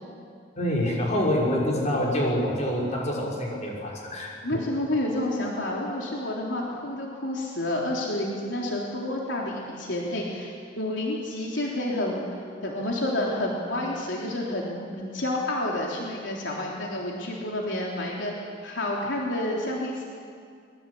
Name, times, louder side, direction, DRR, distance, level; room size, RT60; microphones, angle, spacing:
voice 1, 0.6-4.3, left 1 dB, 40° left, -3 dB, 6.2 m, -26 dB
voice 2, 4.4-20.0, left 1 dB, 80° left, -2 dB, 3.6 m, -29 dB
25.0 x 22.0 x 8.6 m, 2.2 s
head